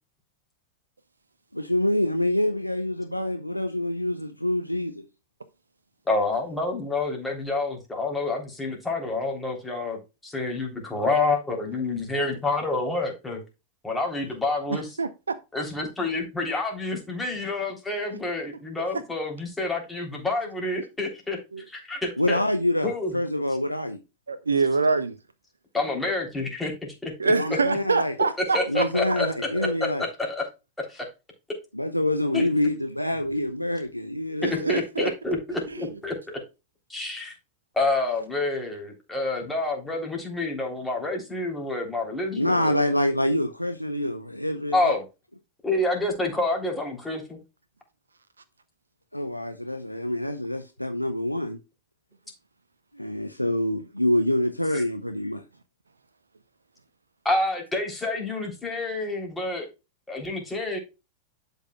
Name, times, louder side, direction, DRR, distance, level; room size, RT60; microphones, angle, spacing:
voice 1, 1.5-5.0 22.2-24.0 27.3-28.1 28.7-30.1 31.7-34.8 42.4-44.9 49.1-51.6 52.9-55.4, left 1 dB, 90° left, 0.7 m, -26 dB
voice 2, 6.1-10.0 10.2-13.4 13.8-14.9 15.5-21.4 21.7-22.4 22.8-23.1 25.7-26.7 27.0-27.1 28.5-29.3 29.5-30.4 30.8-31.0 32.3-32.5 34.4-36.4 36.9-37.3 37.7-42.8 44.7-45.0 45.6-47.4 54.7-54.8 57.2-59.7 60.1-60.8, left 2 dB, 10° left, 3.4 m, -28 dB
voice 3, 14.7-15.4 21.5-21.6 24.3-25.2 27.2-29.2 34.4-35.1 35.7-35.8, right 4 dB, 75° right, 0.6 m, -25 dB
11.5 x 5.5 x 2.3 m
figure-of-eight pair, 90°, 0 cm